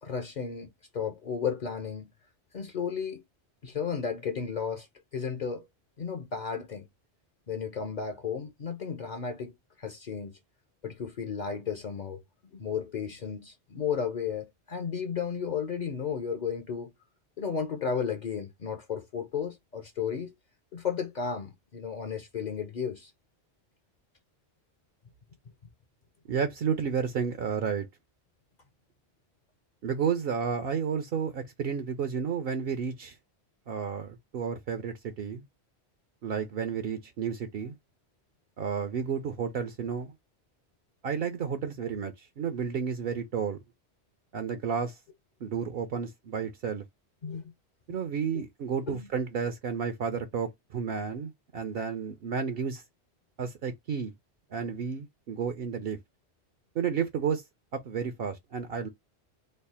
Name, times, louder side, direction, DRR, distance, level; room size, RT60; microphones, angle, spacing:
voice 1, 0.0-2.1 2.5-3.2 3.6-4.9 5.1-5.7 6.0-6.9 7.5-9.5 9.8-10.3 10.8-12.2 12.5-16.9 17.4-20.3 20.7-23.1 47.2-47.5 48.3-48.4 48.9-49.0 54.6-54.7, left 6 dB, 50° left, 0.6 m, -33 dB
voice 2, 26.3-27.9 29.8-33.2 33.7-35.4 36.2-37.8 38.6-40.1 41.0-43.6 44.3-45.0 45.4-46.8 47.9-52.8 53.4-54.1 54.5-56.0 56.7-57.4 57.7-58.9, right 6 dB, 65° right, 0.8 m, -31 dB
3.2 x 2.0 x 4.1 m
omnidirectional pair, 1.1 m